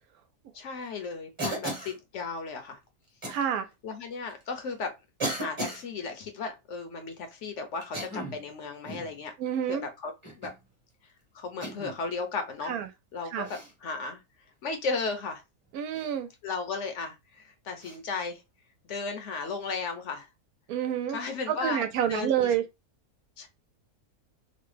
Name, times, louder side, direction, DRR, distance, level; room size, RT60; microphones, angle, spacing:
voice 1, 0.5-2.8 3.8-4.9 5.3-9.3 9.7-10.5 11.3-12.8 13.1-13.5 13.8-14.2 14.6-15.4 16.4-18.4 18.9-20.3 21.1-22.5 23.4-23.5, left 4 dB, 60° left, 0.9 m, -35 dB
Cough, 1.4-2.0 3.2-3.4 4.3-4.4 5.2-5.8 7.8-8.4 8.8-9.1 10.2-10.6 11.6-12.0 13.4-13.7 15.9-16.1 17.8-18.0, right 1 dB, 25° right, 1.0 m, -35 dB
voice 2, 3.3-3.7 9.4-9.8 12.7-12.9 13.3-13.5 15.7-16.3 20.7-21.2 21.5-22.6, right 9 dB, 85° right, 1.1 m, -28 dB
3.0 x 2.2 x 3.1 m
omnidirectional pair, 1.5 m